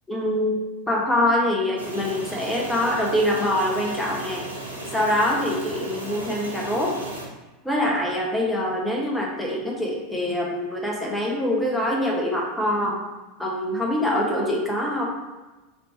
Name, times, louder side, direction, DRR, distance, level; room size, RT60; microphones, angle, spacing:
voice 1, 0.1-4.4 4.9-7.0 7.6-13.0 13.4-15.0, left 1 dB, 5° left, -2 dB, 0.9 m, -24 dB
sound 1, 1.8-7.3, right 1 dB, 90° right, 0.8 m, -35 dB
3.3 x 3.0 x 4.1 m, 1.1 s
figure-of-eight pair, 85°, 0 cm